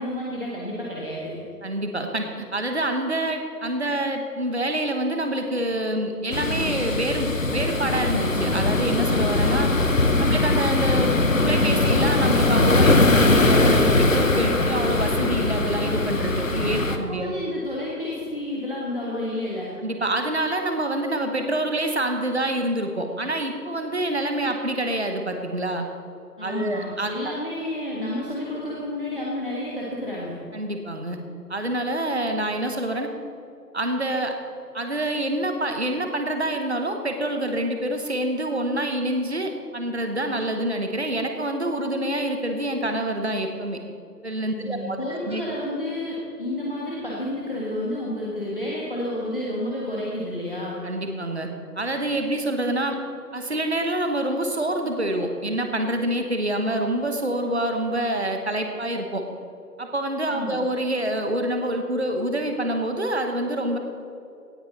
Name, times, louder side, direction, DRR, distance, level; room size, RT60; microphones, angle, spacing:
voice 1, 0.0-1.4 16.9-19.7 26.4-30.3 44.5-50.8 60.3-60.6, left 1 dB, 35° left, -6 dB, 1.6 m, -30 dB
voice 2, 1.6-9.7 10.2-17.3 19.8-25.9 26.4-27.3 30.5-31.2 31.5-33.1 33.7-34.4 34.7-43.8 44.2-45.4 50.8-51.5 51.8-53.0 53.3-59.2 59.8-63.8, right 1 dB, 40° right, 5 dB, 1.1 m, -26 dB
sound 1, 6.3-17.0, left 2 dB, 50° left, 1.0 m, -21 dB
17.5 x 9.4 x 4.0 m, 2.7 s
figure-of-eight pair, 175°, 49 cm